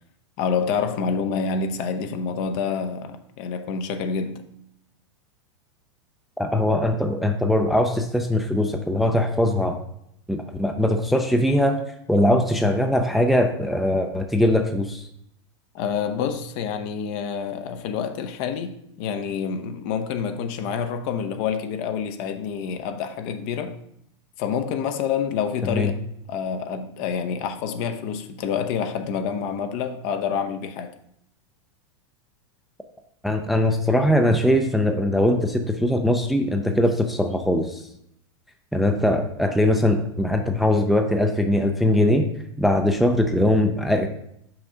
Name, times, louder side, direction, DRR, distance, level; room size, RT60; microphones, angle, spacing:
voice 1, 0.4-4.5 15.7-23.8 24.4-25.9 26.3-30.9, left 6 dB, 50° left, 0.7 m, -27 dB
voice 2, 6.4-9.8 10.3-11.8 12.1-15.0 25.6-25.9 33.2-37.8 38.7-42.3 42.6-44.1, left 1 dB, ahead, 0.4 m, -21 dB
5.9 x 5.2 x 3.7 m
supercardioid pair, 130°, 15 cm